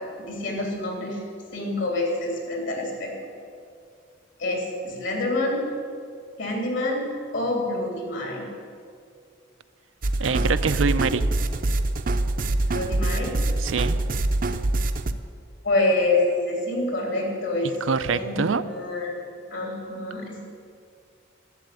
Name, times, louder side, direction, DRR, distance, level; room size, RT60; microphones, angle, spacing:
voice 1, 0.2-1.2 1.5-3.3 4.4-5.7 6.4-8.4 10.2-10.5 12.7-13.3 15.6-17.7 18.1-19.2 19.5-20.4, left 2 dB, 75° left, 0 dB, 3.3 m, -27 dB
sound 1, 10.0-15.1, right 2 dB, 45° right, 0.6 m, -24 dB
voice 2, 10.2-11.3 13.6-14.0 17.9-18.6, right 5 dB, 85° right, 12 dB, 0.6 m, -24 dB
11.5 x 7.7 x 9.8 m, 2.3 s
head